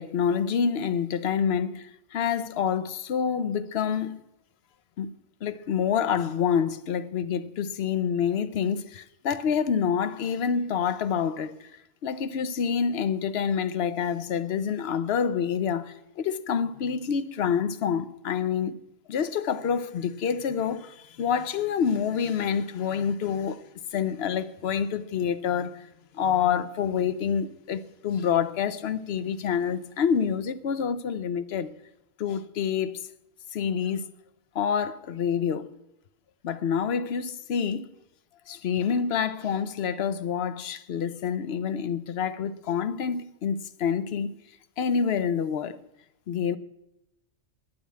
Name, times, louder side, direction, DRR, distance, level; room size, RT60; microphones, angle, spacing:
voice 1, 0.0-4.2 5.0-5.1 5.4-11.7 12.0-18.8 19.1-23.6 23.9-25.9 26.1-31.7 32.2-33.0 33.5-34.1 34.5-35.8 36.4-37.9 38.5-44.3 44.8-45.8 46.3-46.6, left 7 dB, 60° left, 0.8 m, -27 dB
10.0 x 8.8 x 8.5 m
omnidirectional pair, 1.3 m